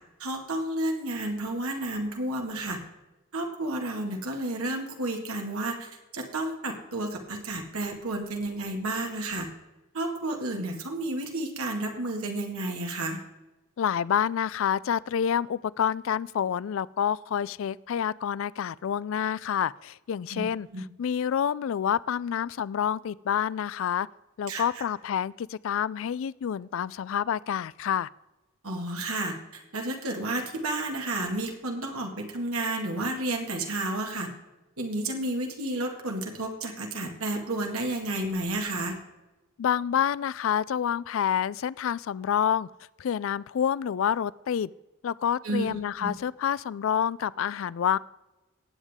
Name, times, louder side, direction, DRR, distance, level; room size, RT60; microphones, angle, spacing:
voice 1, 0.2-2.8 3.3-9.5 9.9-13.2 20.3-20.4 20.7-20.8 24.5-24.8 28.6-34.3 34.8-39.0 45.4-46.1, right 1 dB, 80° right, 2 dB, 2.0 m, -31 dB
voice 2, 13.8-20.7 21.0-24.1 24.4-28.1 39.6-42.7 43.0-44.7 45.0-48.0, left 8 dB, 65° left, 21 dB, 0.3 m, -28 dB
18.0 x 8.2 x 3.6 m, 1.1 s
head